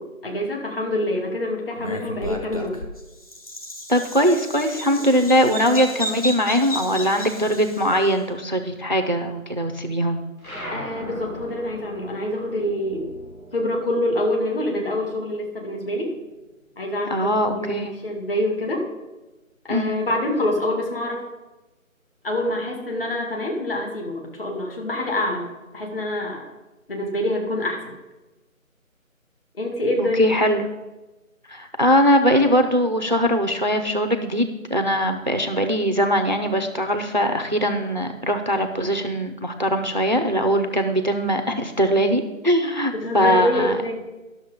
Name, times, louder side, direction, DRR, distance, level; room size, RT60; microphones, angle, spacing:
voice 1, 0.0-2.8 5.1-5.7 10.7-13.1 13.5-16.1 16.8-18.9 19.7-21.2 22.2-25.5 25.7-26.5 26.9-27.8 29.6-30.3 42.9-43.9, left 1 dB, 45° left, 0 dB, 2.3 m, -26 dB
Bird vocalization bird call bird song, 1.8-8.1, equal, 25° left, 0.8 m, -33 dB
voice 2, 3.9-10.2 17.1-17.9 19.7-20.0 30.0-30.7 31.5-43.8, equal, 35° right, 6 dB, 0.5 m, -21 dB
sound 1, 10.4-15.3 15.6-17.0, equal, 90° left, 3.7 m, -39 dB
12.0 x 6.4 x 5.0 m, 1.1 s
figure-of-eight pair, 155°, 42 cm